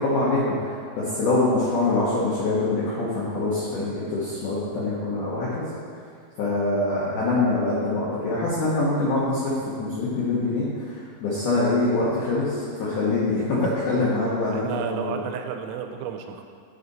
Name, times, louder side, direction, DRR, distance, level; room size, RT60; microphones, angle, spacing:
voice 1, 0.0-5.7 6.4-9.5 9.8-15.2, left 2 dB, 65° left, -7 dB, 2.1 m, -24 dB
voice 2, 14.5-16.4, right 8 dB, 85° right, 5 dB, 2.8 m, -32 dB
10.5 x 5.2 x 4.0 m, 2.2 s
omnidirectional pair, 5.2 m